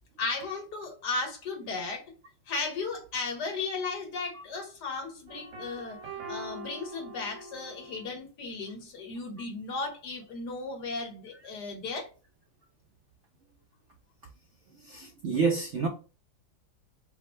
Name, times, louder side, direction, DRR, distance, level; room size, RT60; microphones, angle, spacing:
voice 1, 0.2-2.1 2.5-6.0 6.3-12.1, left 3 dB, 65° left, 1.8 m, -35 dB
sound 1, 5.3-8.1, right 1 dB, 85° right, 1.7 m, -43 dB
voice 2, 14.8-15.9, right 5 dB, 70° right, 0.7 m, -28 dB
5.0 x 2.1 x 4.4 m
omnidirectional pair, 2.0 m